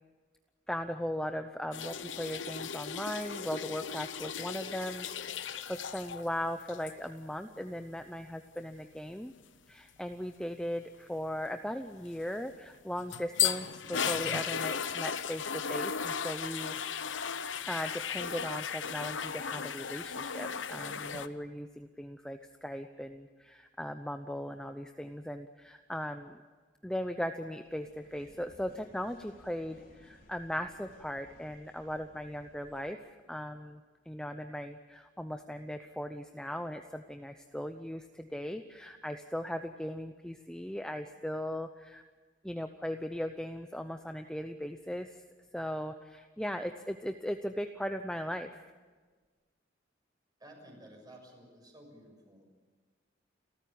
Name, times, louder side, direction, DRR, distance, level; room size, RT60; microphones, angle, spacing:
voice 1, 0.7-5.1 5.4-9.3 9.7-17.0 17.7-26.4 26.8-33.8 34.1-42.0 42.4-45.2 45.5-48.6, equal, 5° left, 6 dB, 0.7 m, -38 dB
sound 1, 1.7-6.3 6.6-6.9 12.7-21.3, left 7 dB, 85° left, 0.9 m, -36 dB
sound 2, 27.6-32.9, left 1 dB, 50° left, 4.1 m, -60 dB
voice 2, 50.4-52.5, right 1 dB, 20° right, 2 dB, 6.4 m, -53 dB
30.0 x 14.0 x 8.7 m, 1.4 s
head